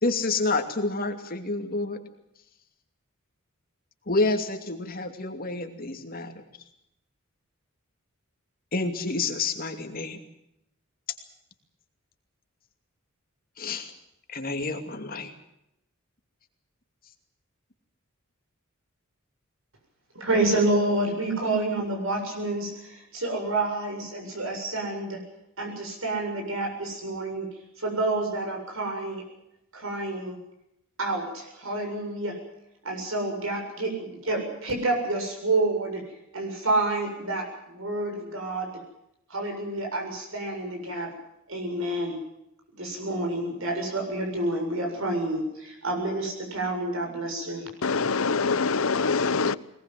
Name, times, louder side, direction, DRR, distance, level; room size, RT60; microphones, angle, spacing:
voice 1, 0.0-2.0 4.1-6.4 8.7-10.2 13.6-13.9 14.3-15.3, left 3 dB, 45° left, 5 dB, 2.6 m, -28 dB
voice 2, 20.1-25.2 25.6-29.2 29.7-30.4 31.0-32.4 32.8-38.8 39.3-41.1 41.5-42.2 42.7-47.7, right 2 dB, 70° right, 2 dB, 7.4 m, -29 dB
voice 3, 47.8-49.6, left 4 dB, 80° left, 16 dB, 0.9 m, -24 dB
21.5 x 20.0 x 7.8 m, 0.82 s
head